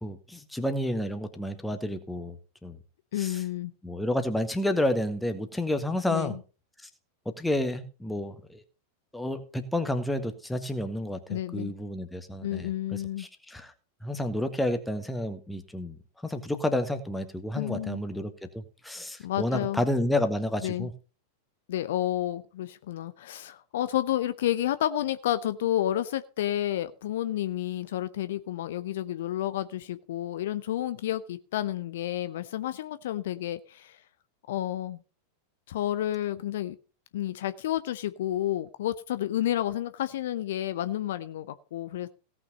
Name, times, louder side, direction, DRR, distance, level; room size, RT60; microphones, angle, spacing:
voice 1, 0.0-2.4 2.6-2.8 3.2-3.4 3.8-6.4 6.8-6.9 7.3-8.6 9.1-13.7 14.0-20.9, left 1 dB, 5° left, 7 dB, 1.6 m, -30 dB
voice 2, 3.1-3.7 6.1-6.4 11.3-11.7 12.4-13.3 17.5-18.0 19.2-19.9 20.6-20.9 21.7-34.0 34.5-35.0 35.7-36.8 37.1-42.1, left 12 dB, 55° left, 13 dB, 0.6 m, -30 dB
17.0 x 6.1 x 5.3 m, 0.34 s
figure-of-eight pair, 90°, 0 cm